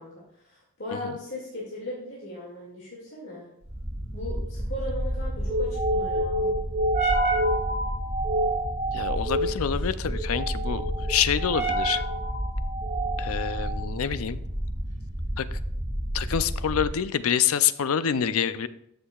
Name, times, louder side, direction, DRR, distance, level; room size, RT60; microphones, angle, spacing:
voice 1, 0.0-3.5 4.1-6.5 9.4-10.1 18.3-18.7, left 1 dB, 55° left, -5 dB, 2.2 m, -38 dB
sound 1, 3.7-17.0, right 1 dB, 30° right, 1.7 m, -28 dB
voice 2, 8.9-12.0 13.2-14.4 15.4-15.6 16.1-18.7, left 8 dB, 75° left, 14 dB, 0.5 m, -26 dB
13.0 x 6.6 x 2.3 m, 0.74 s
head